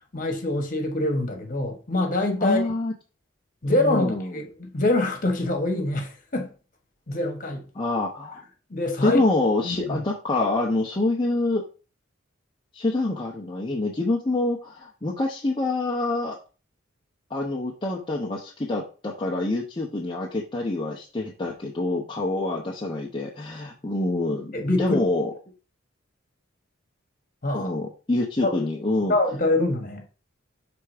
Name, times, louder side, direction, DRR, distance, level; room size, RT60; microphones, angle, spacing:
voice 1, 0.1-2.6 3.6-6.5 7.1-7.6 8.7-9.2 9.6-10.0 24.5-25.0 27.4-27.7 28.4-28.6 29.1-30.0, left 2 dB, 40° left, 1.5 m, -25 dB
voice 2, 2.4-2.9 3.7-4.3 7.7-8.4 9.0-11.7 12.7-16.4 17.3-25.3 27.5-29.1, left 2 dB, 25° left, 0.8 m, -26 dB
5.9 x 3.5 x 4.9 m
head